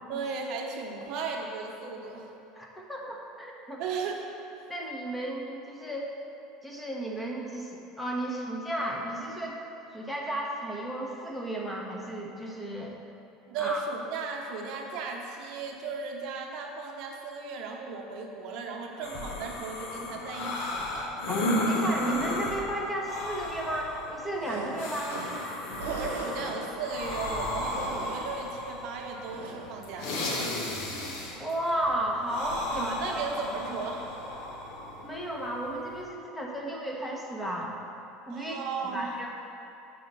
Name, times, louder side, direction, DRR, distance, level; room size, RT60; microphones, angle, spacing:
voice 1, 0.1-2.3 3.8-4.2 4.6-4.7 13.5-21.2 25.8-30.3 32.7-34.1 38.3-39.1, right 4 dB, 60° right, 1 dB, 0.8 m, -36 dB
voice 2, 2.5-3.8 4.7-6.1 6.6-9.6 9.9-12.9 13.6-13.8 21.3-25.2 31.3-33.4 35.0-37.7 38.3-38.5 38.8-39.3, right 1 dB, 10° left, -2 dB, 1.0 m, -34 dB
sound 1, 19.0-36.0, left 1 dB, 70° left, 1.1 m, -34 dB
sound 2, 24.4-34.7, right 3 dB, 90° right, 1.0 m, -44 dB
7.4 x 4.2 x 5.5 m, 2.8 s
supercardioid pair, 110°, 0 cm